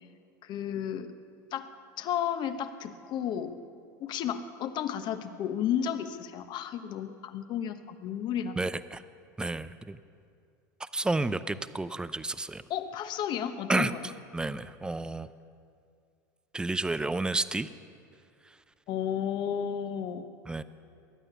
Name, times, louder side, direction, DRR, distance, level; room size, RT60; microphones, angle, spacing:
voice 1, 0.4-1.1 1.5-1.7 2.0-3.6 4.0-8.6 12.7-14.1 18.9-20.2, left 9 dB, 45° left, 9 dB, 1.1 m, -32 dB
voice 2, 8.6-9.0 9.4-10.0 10.8-12.6 13.7-15.3 16.5-17.7 18.5-18.6 20.5-20.6, right 2 dB, 10° right, 14 dB, 0.5 m, -31 dB
22.5 x 9.1 x 7.0 m, 2.4 s
hypercardioid pair, 95°, 10 cm